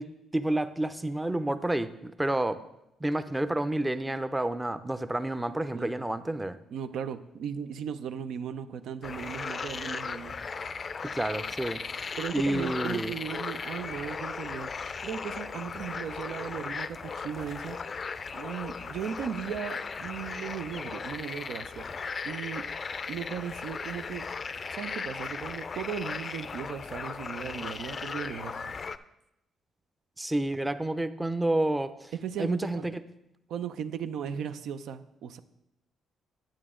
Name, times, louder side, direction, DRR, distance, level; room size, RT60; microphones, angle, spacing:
voice 1, 0.0-2.6 3.0-6.6 11.1-13.1 30.2-32.1 32.4-33.0, right 1 dB, 10° right, 10 dB, 0.5 m, -30 dB
voice 2, 5.7-6.0 6.7-10.3 12.2-14.7 15.0-17.8 18.3-21.8 22.2-22.7 23.1-24.3 24.7-28.7 32.2-33.0 33.5-35.4, right 8 dB, 75° right, 10 dB, 0.5 m, -37 dB
sound 1, 9.0-29.0, left 5 dB, 40° left, 0.4 m, -37 dB
9.0 x 8.7 x 3.7 m, 0.85 s
cardioid pair, 90°, 0 cm